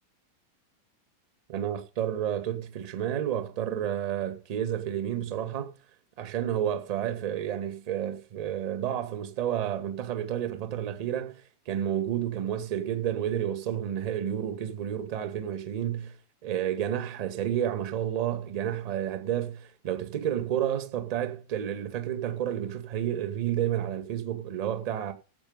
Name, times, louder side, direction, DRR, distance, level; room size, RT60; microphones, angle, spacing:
voice 1, 1.5-5.7 6.2-16.2 16.4-25.1, right 10 dB, 45° right, 2.4 m, -30 dB
15.0 x 8.0 x 5.5 m
figure-of-eight pair, 90°, 0 cm